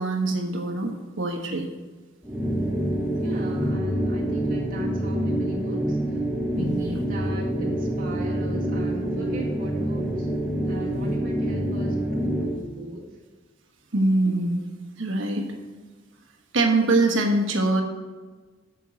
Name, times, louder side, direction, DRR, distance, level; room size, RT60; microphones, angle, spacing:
voice 1, 0.0-1.7 6.5-7.0 13.9-14.6 15.0-15.5 16.5-17.8, right 2 dB, 70° right, 3 dB, 1.2 m, -23 dB
sound 1, 2.2-12.6, right 1 dB, 5° right, 1.0 m, -26 dB
voice 2, 3.2-6.2 6.5-10.3 10.6-13.2, equal, 45° right, -4 dB, 1.9 m, -39 dB
9.0 x 6.0 x 6.2 m, 1.3 s
head